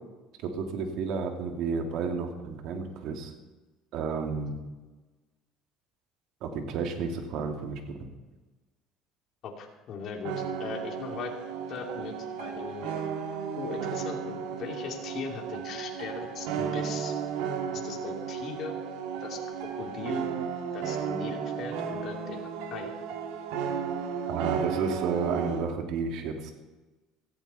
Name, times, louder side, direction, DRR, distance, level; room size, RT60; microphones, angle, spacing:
voice 1, 0.4-3.3 3.9-4.6 6.4-8.1 24.3-26.5, right 5 dB, 65° right, 4 dB, 2.6 m, -31 dB
voice 2, 9.4-11.3 11.7-12.9 13.5-17.1 17.7-18.8 19.2-20.3 20.7-22.9, left 5 dB, 50° left, 1 dB, 3.1 m, -39 dB
sound 1, 10.2-25.7, right 7 dB, 85° right, 1.9 m, -34 dB
17.0 x 15.0 x 4.3 m, 1.2 s
cardioid pair, 120°, 0 cm